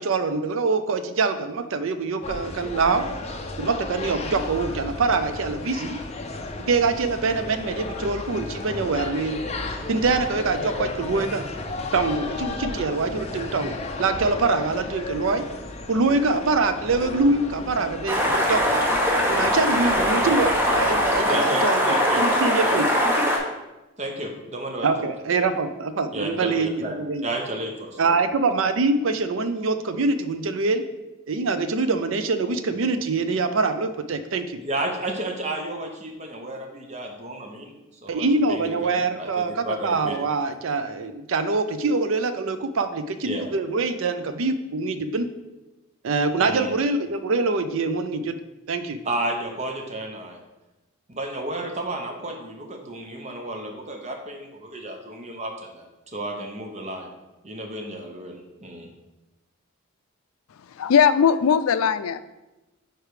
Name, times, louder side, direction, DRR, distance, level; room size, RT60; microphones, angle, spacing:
voice 1, 0.0-3.1 3.6-6.0 6.7-9.4 9.9-11.4 11.9-15.4 15.9-18.8 19.3-22.9 24.8-27.2 28.0-30.8 31.3-34.6 38.1-45.3 46.0-48.4 48.7-49.0, right 3 dB, 65° right, 10 dB, 0.5 m, -24 dB
sound 1, 2.2-21.2, left 2 dB, 30° left, 0.5 m, -34 dB
sound 2, 18.1-23.4, equal, 10° right, 0.8 m, -21 dB
voice 2, 21.2-22.8 24.0-25.1 25.4-25.5 26.1-26.9 27.2-28.1 34.6-37.7 38.0-40.3 43.2-43.5 46.4-46.7 49.0-50.4 51.1-57.1 57.4-58.9, right 1 dB, 35° right, 2 dB, 0.8 m, -32 dB
voice 3, 60.8-62.2, left 7 dB, 90° left, 13 dB, 0.4 m, -19 dB
5.0 x 4.5 x 4.8 m, 1.0 s
head